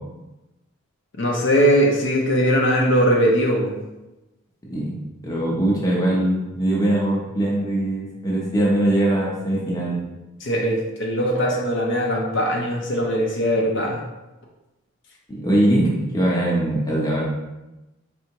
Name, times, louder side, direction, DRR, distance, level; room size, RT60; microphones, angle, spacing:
voice 1, 1.2-3.7 10.4-14.0, equal, 55° left, -1 dB, 0.6 m, -20 dB
voice 2, 5.2-10.0 15.3-17.2, right 1 dB, 15° left, -4 dB, 0.8 m, -21 dB
4.5 x 3.4 x 2.9 m, 1.0 s
head